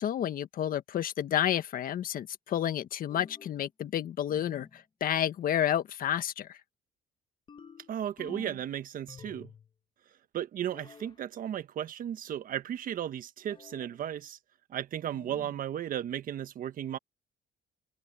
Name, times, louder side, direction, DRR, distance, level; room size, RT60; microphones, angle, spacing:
voice 1, 0.0-6.6, left 10 dB, 55° left, 1.6 m, -30 dB
sound 1, 3.1-3.6 4.3-4.8 7.5-8.7 9.1-9.7 10.7-11.2 13.5-14.0 15.1-15.6, left 5 dB, 30° left, 1.9 m, -50 dB
voice 2, 7.9-9.5 10.3-14.4 14.7-17.0, right 10 dB, 55° right, 1.3 m, -35 dB
cardioid pair, 110°, 17 cm